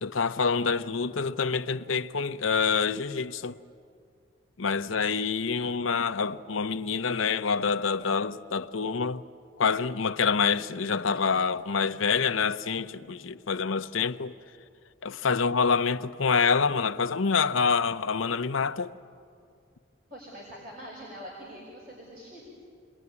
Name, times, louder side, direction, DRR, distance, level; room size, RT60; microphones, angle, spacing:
voice 1, 0.0-3.6 4.6-9.2 9.6-14.3 15.0-18.9, left 5 dB, 85° left, 0.8 m, -26 dB
voice 2, 20.1-22.5, equal, 50° right, 5.8 m, -44 dB
28.5 x 21.5 x 9.7 m
head